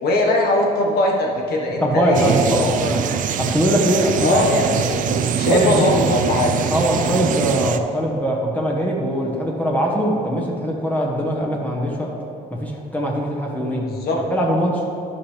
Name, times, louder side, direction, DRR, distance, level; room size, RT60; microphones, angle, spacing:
voice 1, 0.0-3.0 4.2-6.6 13.8-14.2, left 1 dB, 65° left, 0 dB, 1.3 m, -20 dB
voice 2, 1.8-3.1 3.4-4.4 5.3-5.9 6.7-12.1 12.5-13.9 14.3-14.8, equal, 10° left, -3 dB, 1.0 m, -21 dB
sound 1, 2.1-7.8, right 8 dB, 50° right, 0.4 m, -23 dB
11.5 x 5.7 x 3.3 m, 2.7 s
cardioid pair, 110°, 17 cm